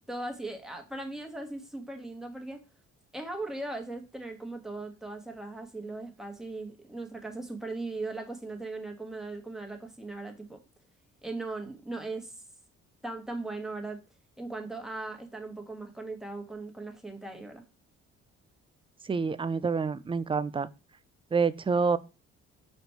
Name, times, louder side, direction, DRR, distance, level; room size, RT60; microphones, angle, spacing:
voice 1, 0.1-2.6 3.1-10.6 11.2-12.4 13.0-14.0 14.4-17.6, right 2 dB, ahead, 1.4 m, -38 dB
voice 2, 19.1-20.7 21.3-22.0, right 5 dB, 20° right, 0.4 m, -27 dB
5.1 x 4.2 x 4.5 m
cardioid pair, 90°, 30 cm